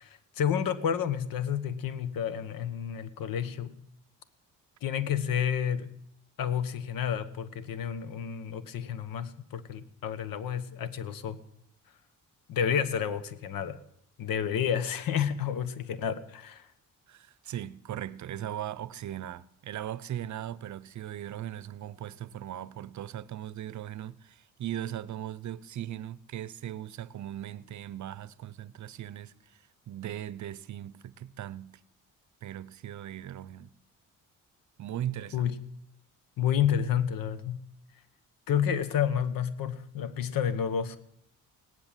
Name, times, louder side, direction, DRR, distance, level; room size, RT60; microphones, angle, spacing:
voice 1, 0.0-3.7 4.8-5.9 6.4-11.4 12.5-13.8 14.2-16.7 35.3-35.6 36.4-37.6 38.5-41.0, left 8 dB, 85° left, 1.2 m, -30 dB
voice 2, 17.1-31.7 32.4-33.7 34.8-35.5, right 11 dB, 60° right, 0.7 m, -39 dB
17.5 x 10.5 x 7.4 m
cardioid pair, 105°, 33 cm